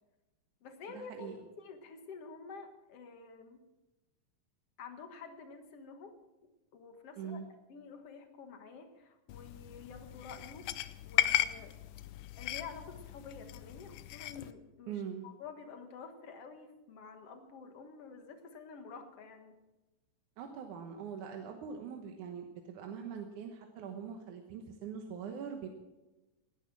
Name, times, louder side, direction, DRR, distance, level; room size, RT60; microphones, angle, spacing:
voice 1, 0.6-3.6 4.8-6.1 6.7-10.7 11.0-11.8 12.4-19.6, left 5 dB, 55° left, 7 dB, 2.1 m, -49 dB
voice 2, 7.2-7.5 14.9-15.3 20.4-25.7, right 7 dB, 70° right, 4 dB, 2.5 m, -42 dB
sound 1, 9.3-14.5, left 14 dB, 75° left, 2.0 m, -36 dB
19.0 x 10.5 x 6.0 m, 1.1 s
omnidirectional pair, 3.9 m